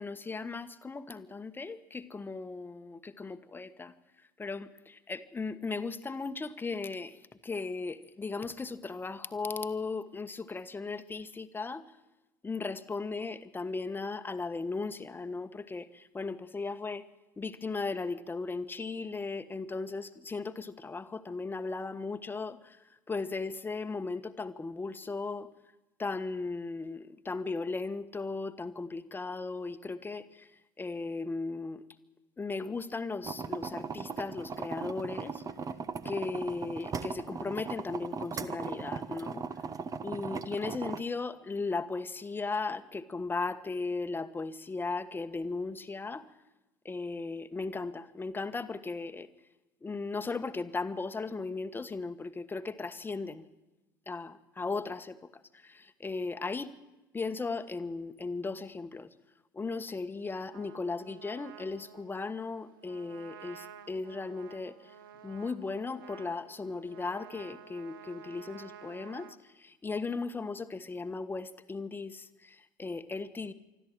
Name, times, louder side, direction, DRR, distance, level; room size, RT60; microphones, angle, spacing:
voice 1, 0.0-3.9 4.4-7.2 7.4-11.8 12.4-17.0 17.4-22.8 23.1-25.5 26.0-30.5 30.8-31.8 32.4-35.4 36.0-39.4 40.0-46.2 46.8-49.3 49.8-53.5 54.1-55.2 55.5-56.7 57.1-59.1 59.5-64.9 65.2-73.5, left 3 dB, 20° left, 11 dB, 1.3 m, -37 dB
sound 1, 33.2-41.0, right 5 dB, 30° right, 1.2 m, -38 dB
Trumpet, 60.5-69.4, right 8 dB, 75° right, 1.0 m, -52 dB
25.0 x 13.5 x 9.1 m, 1.1 s
figure-of-eight pair, 65°, 11 cm